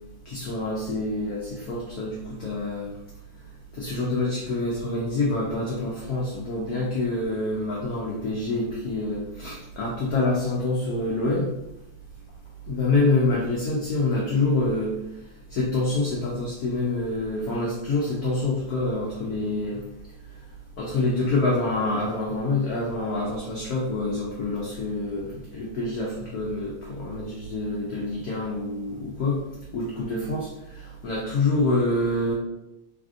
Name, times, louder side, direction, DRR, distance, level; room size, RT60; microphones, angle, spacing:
voice 1, 0.3-2.9 3.8-11.5 12.7-15.0 15.5-19.8 20.8-29.4 29.7-32.3, left 2 dB, 75° left, -5 dB, 0.8 m, -26 dB
3.4 x 2.5 x 2.4 m, 0.88 s
omnidirectional pair, 2.3 m